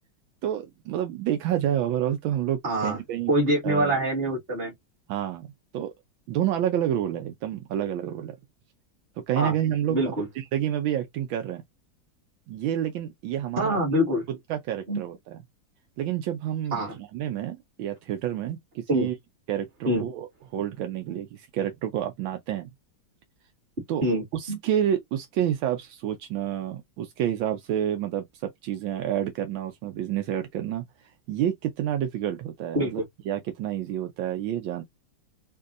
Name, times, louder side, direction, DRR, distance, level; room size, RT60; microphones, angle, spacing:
voice 1, 0.4-3.3 3.6-4.0 5.1-5.9 6.3-8.4 9.3-10.0 10.4-11.6 12.5-13.8 14.5-15.4 16.0-19.1 19.5-20.3 20.5-22.7 23.9-24.0 24.3-30.9 31.3-34.8, right 10 dB, 80° right, 1.4 m, -29 dB
voice 2, 2.6-3.0 3.3-4.7 9.4-9.5 9.9-10.3 13.6-14.2 14.9-15.0 16.7-17.0 18.9-19.1 19.8-20.0 24.0-24.6 32.7-33.1, right 1 dB, 30° right, 2.0 m, -25 dB
4.0 x 2.6 x 2.5 m
omnidirectional pair, 2.1 m